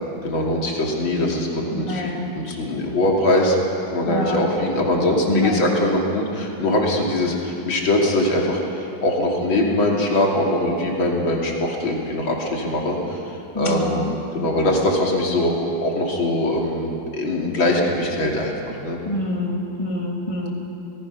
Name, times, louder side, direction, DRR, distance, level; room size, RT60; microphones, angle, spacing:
voice 1, 0.2-3.6 3.9-15.5 15.8-19.0, left 1 dB, 85° left, -1 dB, 3.5 m, -22 dB
voice 2, 1.7-2.3 4.1-4.4 5.3-5.6 13.5-14.1 19.0-20.5, left 1 dB, 15° left, -1 dB, 2.5 m, -26 dB
26.0 x 19.0 x 6.3 m, 2.7 s
omnidirectional pair, 2.1 m